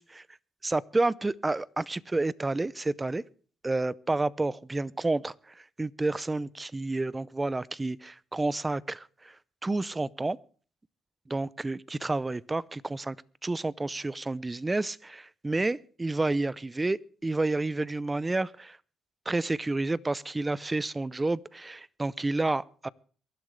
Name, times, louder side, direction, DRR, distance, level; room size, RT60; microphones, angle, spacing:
voice 1, 0.6-3.2 3.6-9.4 9.6-10.4 11.3-13.2 13.4-18.8 19.3-22.9, right 2 dB, 20° right, 0.5 m, -30 dB
23.0 x 12.0 x 3.2 m
cardioid pair, 90°, 0 cm